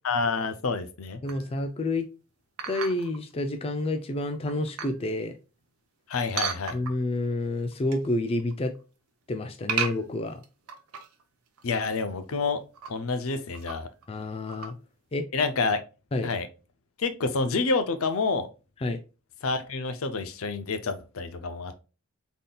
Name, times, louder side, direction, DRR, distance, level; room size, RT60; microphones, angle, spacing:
voice 1, 0.0-1.2 6.1-6.8 11.6-12.6 12.9-13.9 15.3-15.8 16.2-16.5 17.0-18.5 19.4-21.8, left 4 dB, 70° left, 0.6 m, -28 dB
voice 2, 1.2-2.1 2.7-5.3 6.7-8.7 9.3-10.4 14.1-14.7 15.1-15.3 16.1-16.3 18.8-19.0, left 2 dB, 25° left, 0.4 m, -29 dB
sound 1, 1.3-1.6 2.6-3.2 3.8-3.9 4.3-5.0 6.4-7.2 7.6-8.1 8.4-8.8 9.7-11.2 11.6-11.7 11.9-12.0 12.6-12.9 13.5-14.0 14.4-14.7, right 7 dB, 90° right, 0.7 m, -34 dB
4.0 x 3.6 x 2.3 m
head